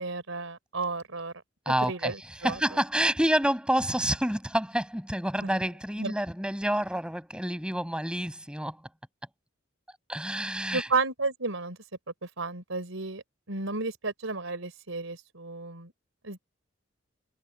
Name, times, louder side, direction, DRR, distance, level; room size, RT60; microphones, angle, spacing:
voice 1, 0.0-1.3 1.9-2.2 2.4-2.6 5.4-5.5 6.0-6.1 10.7-11.8 12.2-13.2 13.5-15.9 16.2-16.4, right 3 dB, 80° right, 3.7 m, -32 dB
voice 2, 1.6-8.9 10.1-10.9, right 1 dB, 5° right, 6.3 m, -28 dB
head